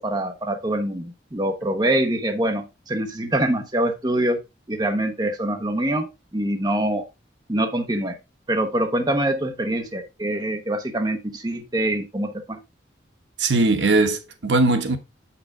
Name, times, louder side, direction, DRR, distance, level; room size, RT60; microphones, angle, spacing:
voice 1, 0.0-4.4 4.7-7.1 7.5-8.2 8.5-12.6, right 1 dB, 20° right, 1.0 m, -24 dB
voice 2, 13.4-15.0, right 2 dB, 75° right, 1.1 m, -19 dB
7.6 x 5.9 x 3.7 m
head